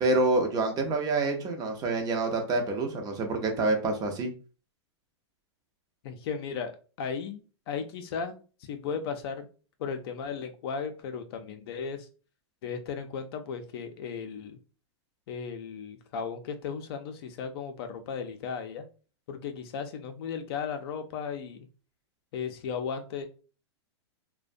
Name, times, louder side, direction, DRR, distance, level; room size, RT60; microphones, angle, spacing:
voice 1, 0.0-4.3, right 2 dB, 25° right, 3 dB, 0.5 m, -27 dB
voice 2, 6.0-6.7 7.0-8.4 8.7-9.5 9.8-12.1 12.6-14.6 15.3-18.9 19.3-21.7 22.3-23.3, left 6 dB, 60° left, 6 dB, 0.4 m, -35 dB
2.5 x 2.1 x 2.5 m, 0.36 s
hypercardioid pair, 125°, 15 cm